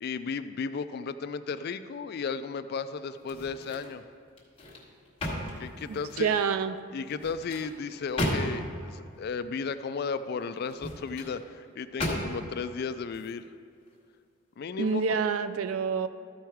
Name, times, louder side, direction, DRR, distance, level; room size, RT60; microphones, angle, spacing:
voice 1, 0.0-4.0 5.6-6.3 6.9-13.4 14.6-15.0, left 5 dB, 45° left, 11 dB, 0.3 m, -34 dB
sound 1, 3.2-4.0 4.4-6.3 7.1-8.8 10.6-11.3 12.0-12.6 13.1-13.3, equal, 25° left, 1.2 m, -34 dB
voice 2, 5.9-6.8 14.8-16.1, right 5 dB, 80° right, 12 dB, 0.4 m, -27 dB
13.5 x 4.6 x 4.6 m, 2.3 s
head